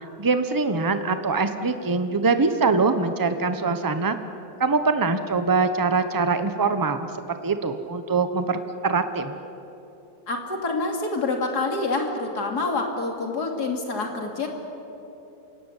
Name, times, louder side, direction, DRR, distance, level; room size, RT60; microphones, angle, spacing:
voice 1, 0.2-4.2 4.6-9.3, right 4 dB, 30° right, 9 dB, 0.4 m, -23 dB
voice 2, 10.3-14.5, left 3 dB, 50° left, 2 dB, 3.2 m, -27 dB
27.5 x 17.5 x 9.9 m, 3.0 s
omnidirectional pair, 2.3 m